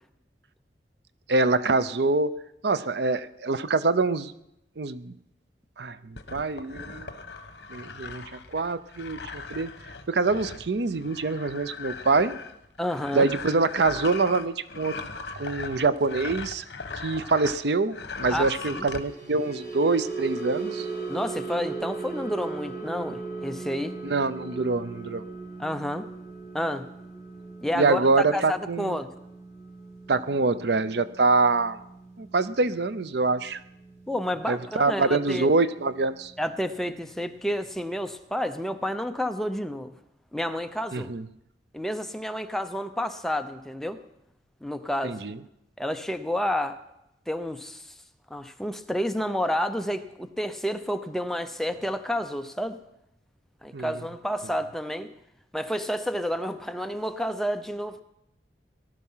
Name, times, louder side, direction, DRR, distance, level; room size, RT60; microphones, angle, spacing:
voice 1, 1.3-2.3 2.6-4.3 4.8-5.1 5.8-7.1 7.7-8.2 8.5-9.7 10.1-12.4 13.1-14.9 15.4-16.6 17.0-20.9 24.0-25.2 27.7-29.0 30.1-31.8 32.2-33.6 34.5-36.3 40.9-41.2 45.0-45.4 53.7-54.0, right 3 dB, 70° right, 14 dB, 0.6 m, -25 dB
sound 1, 6.2-17.6 17.9-19.0, left 4 dB, 70° left, 1.2 m, -39 dB
voice 2, 12.8-13.3 18.3-18.9 21.1-24.0 25.6-26.1 26.5-26.9 27.6-28.0 28.3-29.1 34.1-35.5 36.4-39.9 40.3-41.1 41.7-44.0 44.6-45.2 45.8-46.8 47.3-47.9 48.3-52.8 53.6-55.1 55.5-58.0, equal, ahead, 7 dB, 0.8 m, -30 dB
sound 2, 18.8-35.2 35.5-35.8 36.2-36.4, right 4 dB, 40° right, 6.9 m, -38 dB
18.5 x 12.0 x 5.7 m, 0.82 s
head